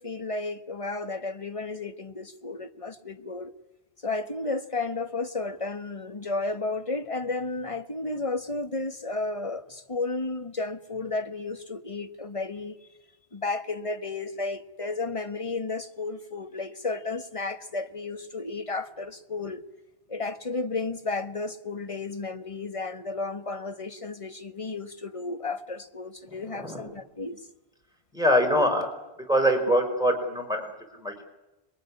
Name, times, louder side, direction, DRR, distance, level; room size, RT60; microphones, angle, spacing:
voice 1, 0.0-3.5 4.0-12.8 13.3-19.6 20.1-27.5, left 3 dB, 30° left, 1.4 m, -33 dB
voice 2, 26.3-26.9 28.1-28.9 29.2-31.2, equal, 5° right, 4.8 m, -24 dB
26.5 x 22.0 x 9.7 m
omnidirectional pair, 1.1 m